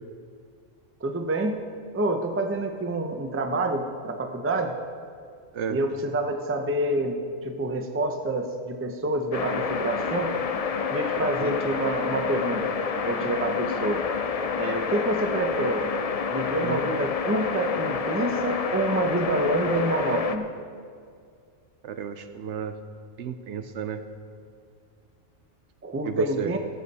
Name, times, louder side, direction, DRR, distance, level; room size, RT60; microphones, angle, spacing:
voice 1, 1.0-1.6 1.9-4.7 5.7-10.3 10.9-12.8 13.0-14.0 14.6-15.9 16.3-20.5 25.8-26.6, right 2 dB, 15° right, 5 dB, 0.5 m, -27 dB
sound 1, 9.3-20.4, left 6 dB, 60° left, 0.3 m, -28 dB
voice 2, 21.8-22.7 23.2-24.0 26.1-26.5, right 7 dB, 70° right, 9 dB, 0.9 m, -32 dB
16.5 x 8.3 x 4.1 m, 2.2 s
omnidirectional pair, 1.3 m